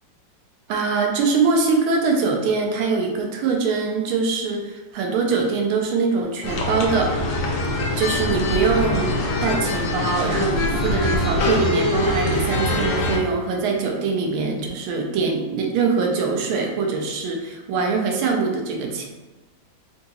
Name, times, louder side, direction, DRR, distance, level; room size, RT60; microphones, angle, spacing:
voice 1, 0.7-7.2 8.0-19.1, right 4 dB, 85° right, 1 dB, 1.4 m, -23 dB
sound 1, 6.4-13.2, left 1 dB, 70° left, 1.1 m, -23 dB
3.8 x 2.8 x 2.3 m, 1.1 s
omnidirectional pair, 2.2 m